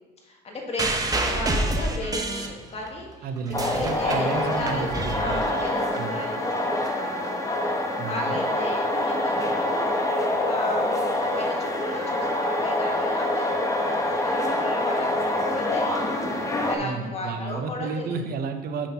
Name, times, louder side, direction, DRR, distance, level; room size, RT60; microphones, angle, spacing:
voice 1, 0.3-3.3 3.6-7.4 8.0-10.0 10.4-11.1 11.4-16.1 16.7-18.2, left 2 dB, 40° left, 0 dB, 1.8 m, -35 dB
sound 1, 0.8-3.0 3.4-6.0 6.9-7.0, right 2 dB, 20° right, 0.9 m, -28 dB
voice 2, 3.2-5.4 6.0-6.2 8.0-8.4 16.8-18.9, right 4 dB, 60° right, 7 dB, 0.9 m, -31 dB
sound 2, 3.5-16.7, left 1 dB, 20° left, 1.0 m, -26 dB
7.1 x 4.5 x 5.7 m, 1.2 s
cardioid pair, 110°, 17 cm